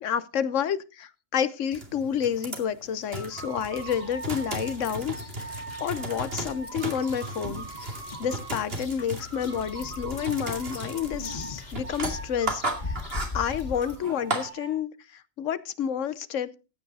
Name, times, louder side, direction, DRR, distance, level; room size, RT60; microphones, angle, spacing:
voice 1, 0.0-7.9 8.2-13.0 13.3-16.5, left 8 dB, 70° left, 16 dB, 1.1 m, -30 dB
sound 1, 1.7-14.5, right 2 dB, 45° right, 2.6 m, -36 dB
sound 2, 3.1-8.8 9.2-11.5 11.8-14.7, right 3 dB, 80° right, 6.8 m, -43 dB
sound 3, 3.8-14.0, left 3 dB, 35° left, 1.5 m, -41 dB
15.0 x 9.0 x 4.1 m, 0.31 s
omnidirectional pair, 1.4 m